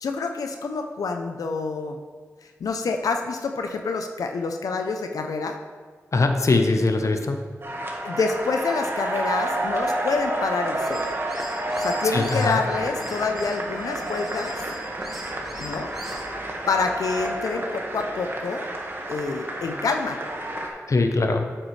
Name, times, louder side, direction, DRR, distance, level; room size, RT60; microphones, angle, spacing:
voice 1, 0.0-2.0 2.6-5.6 8.0-11.0 11.8-14.5 15.6-15.9 16.7-18.7 19.1-20.2, left 4 dB, 85° left, 5 dB, 0.5 m, -27 dB
voice 2, 6.1-7.4 12.1-12.6 20.9-21.5, left 3 dB, 60° left, 5 dB, 0.8 m, -21 dB
sound 1, 7.6-20.7, right 1 dB, 40° right, 1.5 m, -30 dB
sound 2, 10.7-12.5 13.0-16.3, equal, 5° right, 1.7 m, -43 dB
8.3 x 7.7 x 3.2 m, 1.5 s
cardioid pair, 40°, 6 cm